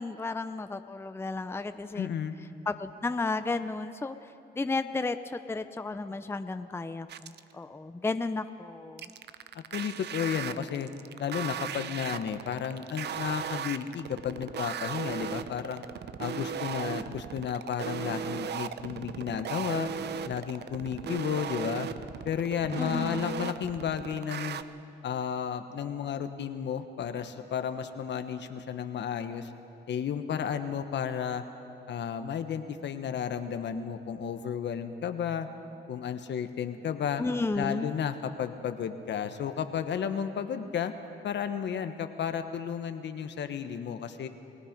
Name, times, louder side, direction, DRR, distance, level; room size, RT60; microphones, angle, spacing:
voice 1, 0.0-2.1 2.7-9.1 22.8-23.5 37.2-37.9, left 3 dB, 10° left, 10 dB, 0.6 m, -33 dB
voice 2, 1.9-2.4 9.5-10.9 11.2-15.8 16.2-19.9 20.2-21.9 22.2-24.6 25.0-29.5 29.9-31.4 31.9-35.5 35.9-37.2 37.5-40.9 41.2-44.3, left 8 dB, 65° left, 9 dB, 1.3 m, -33 dB
sound 1, 7.1-7.5 9.0-24.6, right 8 dB, 55° right, 0.7 m, -36 dB
29.5 x 18.0 x 5.3 m, 2.8 s
cardioid pair, 90°, 20 cm